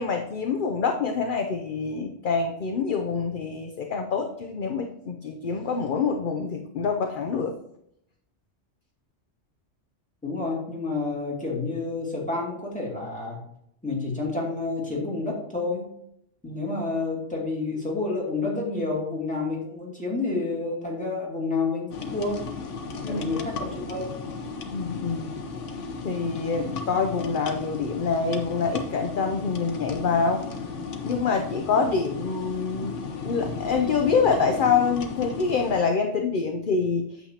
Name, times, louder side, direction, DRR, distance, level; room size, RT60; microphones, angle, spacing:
voice 1, 0.0-7.5 23.0-23.2 24.7-25.4 26.0-30.4 31.0-37.0, left 5 dB, 50° left, 4 dB, 0.7 m, -26 dB
voice 2, 10.2-13.4 13.8-15.9 16.4-22.4 23.1-24.0, left 3 dB, 5° left, -4 dB, 2.4 m, -29 dB
sound 1, 21.9-35.8, left 4 dB, 85° left, 1.3 m, -35 dB
8.6 x 7.2 x 2.8 m, 0.74 s
omnidirectional pair, 1.2 m